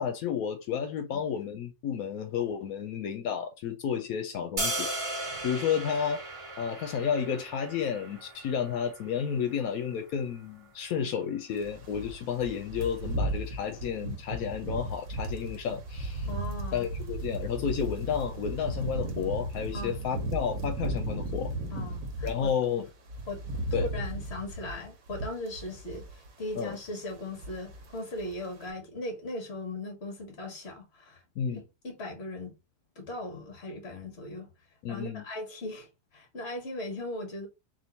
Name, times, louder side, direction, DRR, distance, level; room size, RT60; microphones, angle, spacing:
voice 1, 0.0-5.1 5.4-6.3 6.6-16.3 16.7-21.5 22.2-22.9 23.7-23.9 26.5-26.8 31.4-31.6 34.8-35.2, left 7 dB, 80° left, 1.1 m, -31 dB
sound 1, 4.6-10.7, right 2 dB, 30° right, 0.8 m, -37 dB
sound 2, 11.6-22.5 22.9-26.3 26.5-26.8 27.1-27.9 28.2-28.4, right 1 dB, 75° right, 1.4 m, -35 dB
voice 2, 16.3-16.9 19.7-19.9 21.7-22.5 22.8-22.9 23.3-23.4 23.9-26.1 26.4-31.2 31.5-32.5 33.0-34.5 34.9-37.5, left 2 dB, 50° left, 1.6 m, -38 dB
3.7 x 2.6 x 3.9 m
omnidirectional pair, 1.5 m